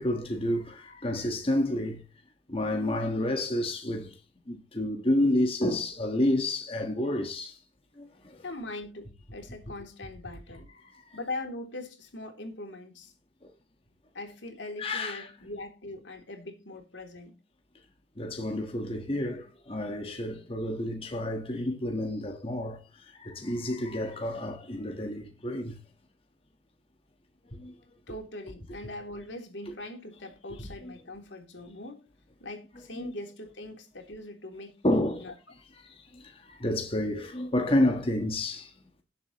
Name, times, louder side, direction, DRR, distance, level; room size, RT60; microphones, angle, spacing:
voice 1, 0.0-2.0 2.5-4.1 4.5-7.5 8.0-8.4 14.8-15.3 18.2-22.8 23.2-25.8 27.6-27.7 29.7-29.8 30.8-30.9 32.9-33.1 34.8-35.3 36.5-38.7, left 1 dB, 30° left, 1.5 m, -29 dB
voice 2, 8.4-10.7 11.1-13.1 14.1-17.3 28.1-32.0 32.4-35.3, left 2 dB, 80° left, 3.1 m, -41 dB
18.5 x 7.5 x 3.1 m
head